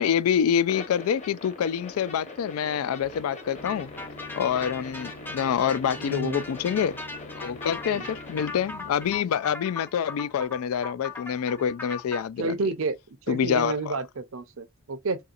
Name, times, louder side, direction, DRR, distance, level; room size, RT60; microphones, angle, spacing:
voice 1, 0.0-3.9 4.4-7.0 7.4-12.7 13.3-14.0, left 8 dB, 80° left, 0.3 m, -26 dB
sound 1, 0.7-8.5, left 2 dB, 35° left, 1.0 m, -43 dB
sound 2, 3.0-9.2, left 3 dB, 60° left, 1.0 m, -46 dB
sound 3, 3.6-12.2, left 3 dB, 10° left, 0.5 m, -39 dB
voice 2, 6.0-6.4 7.9-8.1 12.4-13.0 13.3-15.2, right 3 dB, 65° right, 0.6 m, -30 dB
4.7 x 2.8 x 2.4 m
head